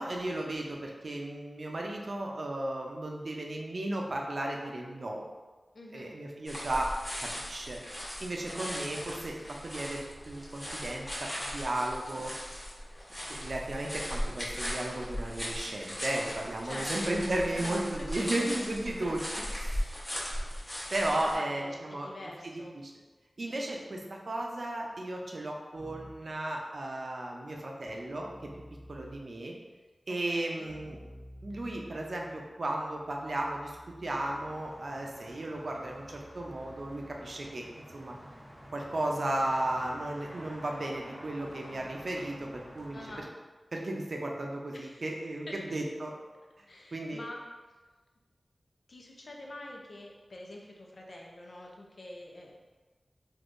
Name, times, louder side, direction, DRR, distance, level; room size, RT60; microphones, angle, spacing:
voice 1, 0.0-5.2 5.9-6.9 7.2-7.8 8.2-12.3 13.2-19.8 20.9-22.1 22.4-22.5 22.8-22.9 23.4-28.3 28.9-29.5 30.1-31.0 31.4-37.6 37.9-38.1 38.7-43.1 43.7-46.1 46.6-46.7 46.9-47.2, right 1 dB, 65° right, 0 dB, 0.5 m, -35 dB
voice 2, 5.7-6.1 16.6-17.2 17.5-17.7 18.2-18.5 19.9-20.3 21.1-22.7 30.1-30.7 42.9-43.3 44.7-45.1 45.5-45.8 46.7-47.4 48.9-52.5, left 1 dB, 65° left, -1 dB, 0.5 m, -45 dB
sound 1, 6.5-21.4, equal, 20° left, 1.0 m, -38 dB
Keyboard (musical), 25.7-26.4 27.8-29.4 30.6-37.7, equal, 50° left, 1.1 m, -53 dB
sound 2, 34.2-43.2, equal, 10° right, 0.6 m, -50 dB
3.6 x 2.6 x 2.5 m, 1.3 s
wide cardioid pair, 60°, 0 cm